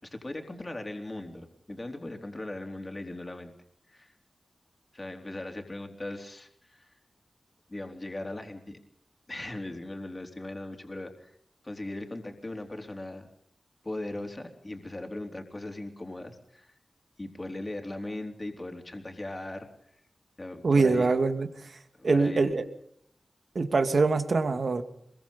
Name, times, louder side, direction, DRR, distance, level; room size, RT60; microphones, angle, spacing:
voice 1, 0.0-3.5 3.9-4.1 4.9-6.9 7.7-8.8 9.3-11.4 11.6-13.3 13.8-16.7 17.2-19.7 20.4-21.1 22.0-22.4, left 1 dB, 25° left, 4 dB, 3.9 m, -39 dB
voice 2, 20.6-21.8 22.0-22.6 23.5-24.8, right 3 dB, 60° right, 7 dB, 2.6 m, -24 dB
26.5 x 22.5 x 5.5 m, 0.71 s
wide cardioid pair, 95°, 0 cm